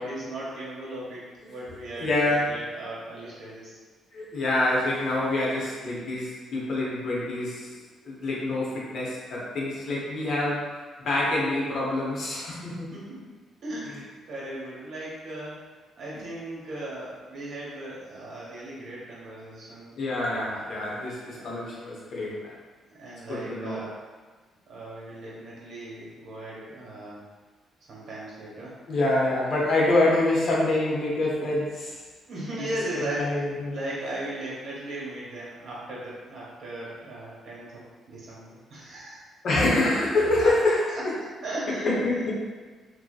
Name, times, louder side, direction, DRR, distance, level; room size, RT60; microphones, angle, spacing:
voice 1, 0.0-3.8 12.9-13.3 13.6-15.6 16.0-19.9 20.4-20.7 21.3-21.5 22.9-23.9 24.7-27.2 27.9-28.7 32.3-33.4 33.7-39.2 40.4-40.5 40.9-41.0 41.4-41.9, right 1 dB, 65° right, -6 dB, 0.9 m, -37 dB
voice 2, 1.9-2.5 4.1-7.8 8.0-10.8 11.0-12.9 20.0-22.5 23.3-23.8 28.9-32.0 32.5-32.6 33.0-33.8 39.4-40.8 41.8-42.3, left 2 dB, 60° left, -5 dB, 0.7 m, -26 dB
2.6 x 2.1 x 2.2 m, 1.4 s
cardioid pair, 90°, 0 cm